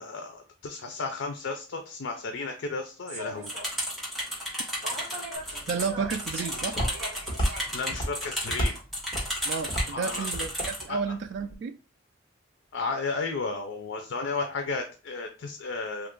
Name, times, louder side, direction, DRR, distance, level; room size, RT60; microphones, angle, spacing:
voice 1, 0.0-3.5 4.8-5.7 7.7-8.8 9.9-10.3 10.9-11.0 12.7-16.1, left 4 dB, 75° left, 0.5 m, -34 dB
Human voice / Subway metro underground, 3.1-8.8, right 1 dB, 35° right, 1.5 m, -42 dB
sound 1, 3.5-10.8, equal, ahead, 1.3 m, -33 dB
Walk footsteps, 5.4-11.5, equal, 25° left, 1.3 m, -34 dB
voice 2, 5.7-6.8 9.4-11.8, right 5 dB, 65° right, 0.3 m, -32 dB
2.7 x 2.4 x 3.7 m
head